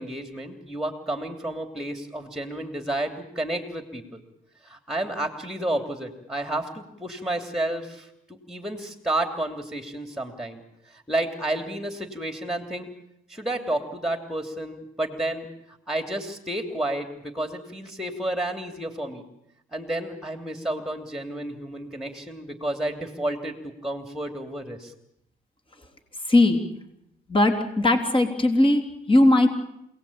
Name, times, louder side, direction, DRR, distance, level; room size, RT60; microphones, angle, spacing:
voice 1, 0.0-4.2 4.6-10.6 10.9-12.9 13.3-19.2 19.7-24.9, right 1 dB, ahead, 6 dB, 3.1 m, -31 dB
voice 2, 26.3-26.6 27.3-29.5, left 2 dB, 25° left, 5 dB, 3.4 m, -19 dB
27.5 x 18.5 x 8.8 m, 0.81 s
cardioid pair, 90°, 20 cm